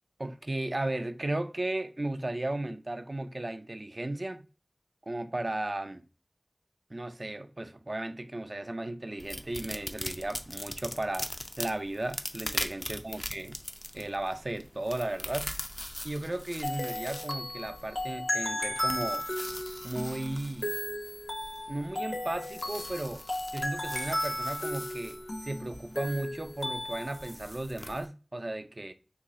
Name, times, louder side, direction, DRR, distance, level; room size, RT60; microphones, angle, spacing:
voice 1, 0.2-4.5 5.1-6.1 6.9-11.3 11.6-13.6 13.9-15.5 16.0-19.3 19.8-20.7 21.7-23.2 23.5-28.9, right 1 dB, 55° right, 0.3 m, -35 dB
sound 1, 9.2-28.1, left 1 dB, 35° left, 0.4 m, -42 dB
sound 2, 16.6-27.3, left 1 dB, 70° left, 0.9 m, -35 dB
2.9 x 2.4 x 3.9 m
wide cardioid pair, 45°, 0 cm